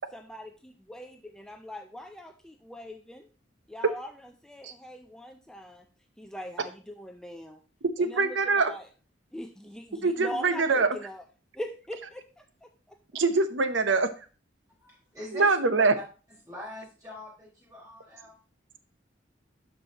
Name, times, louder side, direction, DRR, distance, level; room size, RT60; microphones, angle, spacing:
voice 1, 0.1-3.3 3.7-5.9 6.2-7.6 8.0-8.9 9.3-11.2 11.5-13.2, equal, 5° left, 0.5 m, -42 dB
voice 2, 8.0-8.7 10.0-10.9 13.1-14.1 15.3-15.9, right 3 dB, 80° right, 0.8 m, -24 dB
voice 3, 14.8-15.5 15.8-15.9 16.4-18.3, left 1 dB, 20° right, 4.7 m, -43 dB
12.5 x 4.8 x 2.9 m
head